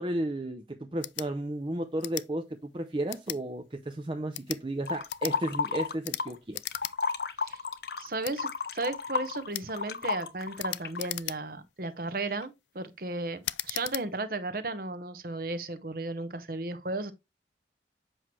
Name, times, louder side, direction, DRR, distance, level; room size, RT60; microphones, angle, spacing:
voice 1, 0.0-6.6, right 1 dB, 30° right, 0.6 m, -33 dB
sound 1, 1.0-1.3 2.0-2.3 3.1-3.4 4.2-4.6 5.1-5.4 6.0-6.2 6.5-7.0 7.3-7.4 8.2-8.4 9.5-9.7 10.6-11.6 12.2-12.5 13.4-14.1, left 16 dB, 80° left, 0.4 m, -37 dB
sound 2, 4.9-6.4 6.6-11.1, left 4 dB, 60° left, 0.8 m, -32 dB
voice 2, 8.0-17.1, right 2 dB, 55° right, 1.0 m, -35 dB
7.9 x 6.0 x 3.2 m
head